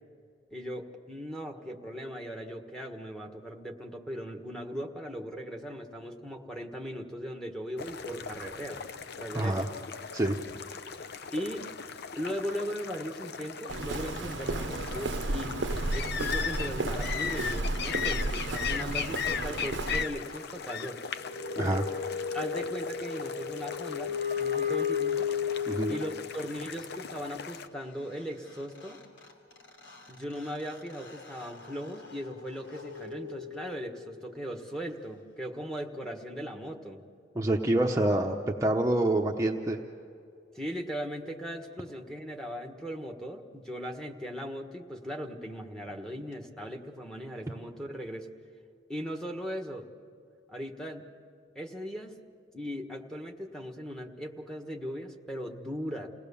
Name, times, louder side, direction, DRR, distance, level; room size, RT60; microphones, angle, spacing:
voice 1, 0.5-8.8 9.2-9.6 11.3-11.7 12.2-15.6 15.9-21.0 22.3-25.3 25.9-29.0 30.1-37.0 40.5-48.3 48.9-49.9 50.5-51.1 51.5-52.2 52.5-56.1, equal, 5° left, 2 dB, 1.5 m, -38 dB
sound 1, 7.8-27.7, left 7 dB, 60° left, 0.7 m, -38 dB
voice 2, 9.3-9.7 10.1-10.4 21.6-21.9 25.7-25.9 37.3-38.4 38.6-39.8, right 1 dB, 15° right, 0 dB, 0.9 m, -26 dB
Walk footsteps, 13.7-20.0, right 2 dB, 70° right, 0.7 m, -33 dB
sound 2, 20.9-26.3 28.2-28.3 28.5-34.0, left 7 dB, 85° left, 3.0 m, -35 dB
29.0 x 18.5 x 7.0 m, 2.5 s
head